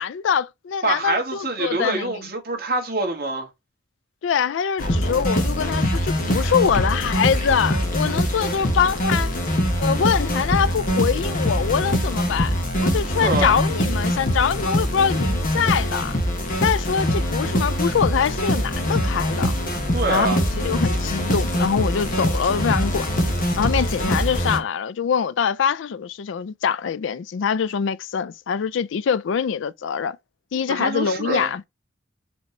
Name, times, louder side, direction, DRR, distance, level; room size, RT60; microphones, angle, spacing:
voice 1, 0.0-2.1 4.2-9.3 9.8-12.5 12.8-16.2 16.6-19.6 20.1-20.3 20.6-23.1 23.6-30.2 30.5-31.6, left 7 dB, 75° left, 0.4 m, -24 dB
voice 2, 0.8-3.5 13.2-13.6 19.9-20.4 30.7-31.5, right 2 dB, 50° right, 1.6 m, -25 dB
sound 1, 4.8-24.6, equal, 45° left, 1.1 m, -23 dB
4.2 x 3.0 x 3.1 m
head